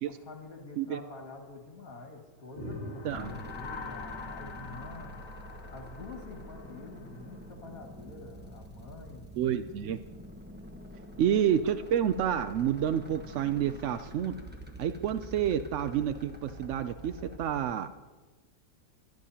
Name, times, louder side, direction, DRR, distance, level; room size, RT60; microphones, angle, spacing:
voice 1, 0.0-5.1 5.7-9.2 11.0-11.2, left 3 dB, 55° left, 1 dB, 2.5 m, -47 dB
sound 1, 2.6-7.2, left 1 dB, 30° right, 3.0 m, -46 dB
sound 2, 2.7-7.2, left 6 dB, 80° left, 1.4 m, -46 dB
sound 3, 3.1-17.7, equal, 5° right, 0.9 m, -47 dB
voice 2, 9.4-10.0 11.2-14.3 14.8-17.9, right 9 dB, 80° right, 10 dB, 0.6 m, -29 dB
22.0 x 12.0 x 2.8 m, 1.2 s
omnidirectional pair, 1.8 m